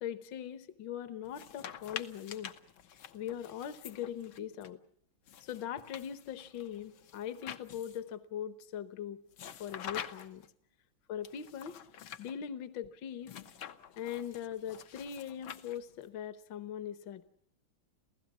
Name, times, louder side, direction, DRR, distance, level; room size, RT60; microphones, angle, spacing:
voice 1, 0.0-2.5 3.1-4.8 5.4-9.2 9.6-10.4 11.1-11.8 12.2-13.4 14.0-17.2, left 9 dB, 70° left, 13 dB, 1.7 m, -41 dB
sound 1, 1.2-4.7 5.3-8.1 9.3-10.5 11.2-12.3 13.2-16.1, left 9 dB, 90° left, 1.9 m, -47 dB
29.0 x 16.0 x 7.3 m, 0.67 s
omnidirectional pair, 2.1 m